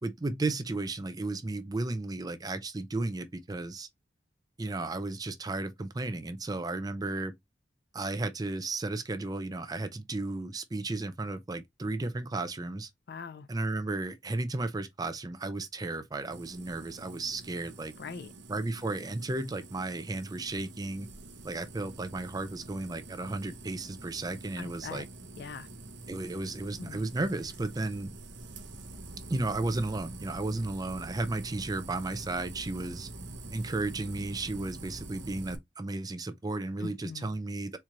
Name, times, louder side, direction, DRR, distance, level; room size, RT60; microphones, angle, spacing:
voice 1, 0.0-3.9 4.6-7.3 7.9-12.9 13.5-17.9 18.5-21.1 21.4-25.1 26.1-28.1 29.3-33.1 33.5-37.8, right 2 dB, 20° right, 0.5 m, -34 dB
voice 2, 13.1-13.5 18.0-18.3 24.6-25.0 25.4-25.7 26.8-27.1 36.8-37.3, left 5 dB, 60° left, 0.4 m, -42 dB
sound 1, 16.3-35.6, right 2 dB, 70° right, 0.8 m, -46 dB
4.3 x 2.4 x 2.9 m
head